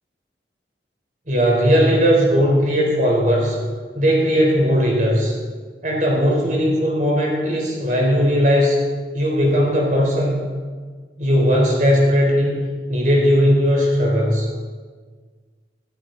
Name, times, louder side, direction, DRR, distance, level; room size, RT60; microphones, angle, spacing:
voice 1, 1.3-3.6 3.9-5.3 5.8-8.8 9.1-10.4 11.2-12.6 12.9-14.5, equal, 45° right, -1 dB, 4.0 m, -18 dB
15.5 x 15.0 x 4.0 m, 1.5 s
head